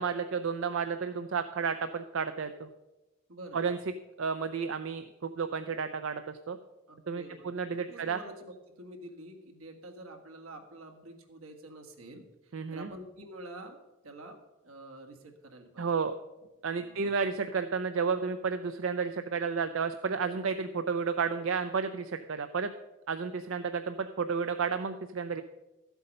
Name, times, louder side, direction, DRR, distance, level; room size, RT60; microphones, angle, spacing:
voice 1, 0.0-2.7 3.5-3.8 4.2-6.2 6.5-6.6 7.1-8.2 12.5-12.9 15.8-16.1 16.6-22.7 23.1-25.4, right 5 dB, 70° right, 9 dB, 0.5 m, -32 dB
voice 2, 3.3-3.6 6.9-7.5 7.9-15.9 16.8-17.2, right 1 dB, 85° right, 3 dB, 1.8 m, -48 dB
13.0 x 8.1 x 5.4 m, 1.1 s
head